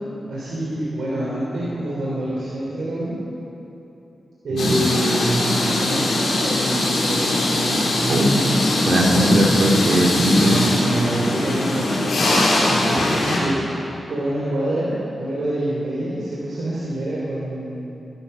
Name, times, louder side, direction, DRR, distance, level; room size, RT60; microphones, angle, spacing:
voice 1, 0.3-3.2 4.4-8.3 10.1-12.1 12.7-14.9 15.2-17.9, right 1 dB, 90° right, -7 dB, 3.4 m, -26 dB
sound 1, 4.6-13.4, left 2 dB, 85° left, 4.3 m, -21 dB
voice 2, 8.8-10.6, right 1 dB, 70° right, -2 dB, 3.2 m, -18 dB
19.5 x 12.0 x 5.8 m, 3.0 s
wide cardioid pair, 100°, 0 cm